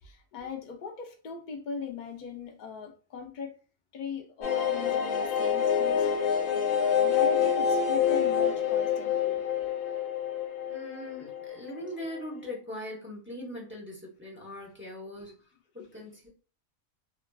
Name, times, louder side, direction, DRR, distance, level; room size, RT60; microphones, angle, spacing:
voice 1, 0.0-3.5 3.9-6.1 6.5-9.4 15.2-15.3, left 6 dB, 55° left, 0.5 m, -40 dB
sound 1, 4.4-11.9 12.2-12.3 12.5-12.6, left 8 dB, 75° left, 1.0 m, -27 dB
voice 2, 10.7-15.4 15.7-16.3, left 1 dB, 10° right, 0.7 m, -41 dB
2.9 x 2.4 x 2.2 m
omnidirectional pair, 1.4 m